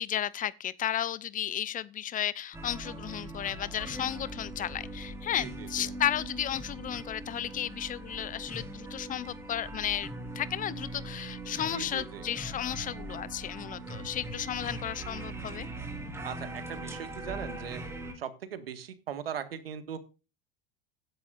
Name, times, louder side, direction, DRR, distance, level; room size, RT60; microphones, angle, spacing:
voice 1, 0.0-10.1 10.3-15.7, left 11 dB, 30° left, 0.7 m, -33 dB
sound 1, 2.5-18.1, right 1 dB, 10° right, 4.3 m, -41 dB
voice 2, 5.4-5.9 11.7-12.3 16.2-17.8 18.1-20.0, right 8 dB, 80° right, 1.7 m, -39 dB
16.0 x 10.5 x 2.5 m
hypercardioid pair, 90°, 29 cm